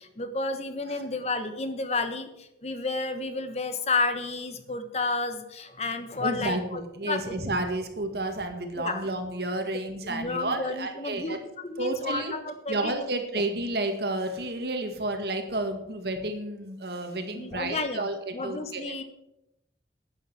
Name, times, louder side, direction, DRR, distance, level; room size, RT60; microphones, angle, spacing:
voice 1, 0.0-6.8 7.1-7.4 8.8-9.0 10.0-12.9 17.4-18.0 18.3-19.0, left 3 dB, 35° left, 9 dB, 1.0 m, -31 dB
voice 2, 6.2-11.4 11.8-12.3 12.7-19.0, right 2 dB, 65° right, 5 dB, 1.9 m, -31 dB
11.5 x 9.1 x 6.2 m, 0.84 s
head